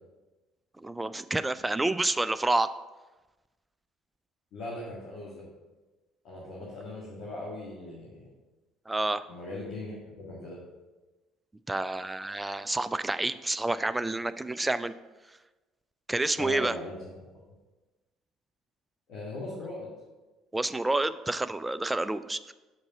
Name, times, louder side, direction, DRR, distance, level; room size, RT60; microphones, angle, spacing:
voice 1, 0.8-2.7 8.9-9.3 11.7-14.9 16.1-16.8 20.5-22.5, right 2 dB, 10° right, 13 dB, 0.3 m, -29 dB
voice 2, 4.5-5.4 6.2-8.3 9.3-10.6 16.4-17.3 19.1-19.9, left 2 dB, 55° left, -6 dB, 2.0 m, -39 dB
6.9 x 5.3 x 5.4 m, 1.2 s
figure-of-eight pair, 55°, 0 cm